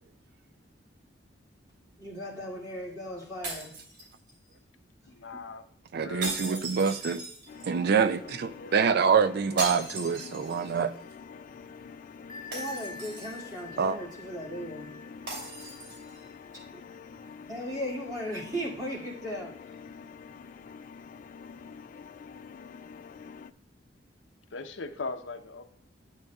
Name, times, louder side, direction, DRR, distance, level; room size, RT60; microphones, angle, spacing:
voice 1, 2.0-3.8 9.5-9.8 12.5-14.9 15.6-15.7 17.5-19.8, equal, 20° right, 2.4 m, -37 dB
sound 1, 3.4-4.5 6.2-7.8 9.6-10.8 11.1-11.2 12.5-13.6 15.3-16.2, right 2 dB, 85° right, 3.0 m, -38 dB
voice 2, 5.1-5.7 5.9-6.4 8.0-8.8 24.5-25.6, left 3 dB, 80° left, 0.7 m, -40 dB
voice 3, 5.9-7.2 7.7-10.9 13.8-14.0, right 6 dB, 60° right, 0.4 m, -26 dB
sound 2, 7.5-23.5, left 6 dB, 45° left, 0.3 m, -47 dB
Bell, 12.3-17.7, left 4 dB, 20° left, 0.7 m, -47 dB
10.5 x 8.2 x 2.3 m
head